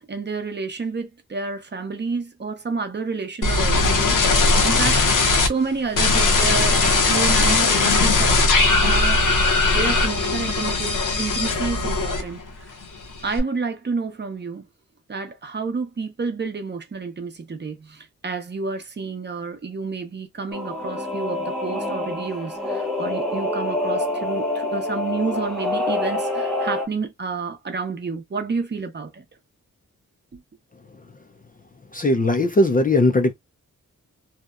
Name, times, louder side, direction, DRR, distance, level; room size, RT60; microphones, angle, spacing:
voice 1, 0.0-5.1 5.5-9.2 9.7-12.7 13.2-14.7 15.1-29.2 30.3-30.4, right 4 dB, 35° right, 0.6 m, -30 dB
sound 1, 3.4-5.5 5.9-12.5 12.8-13.4, left 3 dB, 75° left, 0.8 m, -19 dB
Singing / Musical instrument, 20.5-26.9, left 2 dB, ahead, 0.7 m, -26 dB
voice 2, 31.9-33.3, left 2 dB, 30° left, 0.3 m, -18 dB
2.8 x 2.1 x 2.3 m
wide cardioid pair, 120°, 32 cm